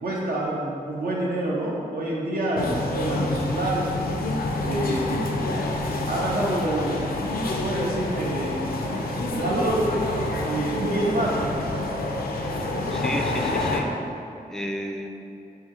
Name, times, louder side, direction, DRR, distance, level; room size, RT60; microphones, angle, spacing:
voice 1, 0.0-3.9 4.6-5.1 6.1-7.0 7.5-8.8 9.3-9.9 10.4-11.4, right 1 dB, 70° right, -3 dB, 0.6 m, -27 dB
sound 1, 2.6-13.8, left 2 dB, 70° left, 0.4 m, -27 dB
voice 2, 12.6-13.9 14.5-15.1, equal, 5° left, 2 dB, 0.3 m, -32 dB
2.8 x 2.7 x 3.6 m, 2.6 s
cardioid pair, 45°, 16 cm